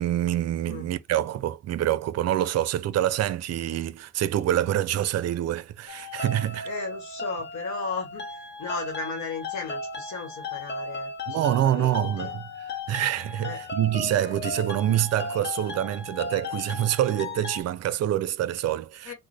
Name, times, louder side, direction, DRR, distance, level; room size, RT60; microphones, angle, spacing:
voice 1, 0.0-6.7 11.3-19.1, right 12 dB, 55° right, 0.5 m, -26 dB
sound 1, 5.9-17.6, left 3 dB, 35° left, 1.0 m, -36 dB
voice 2, 6.6-12.3 13.4-13.6 19.0-19.1, left 4 dB, 65° left, 1.1 m, -36 dB
3.8 x 2.2 x 3.2 m
cardioid pair, 90°, 30 cm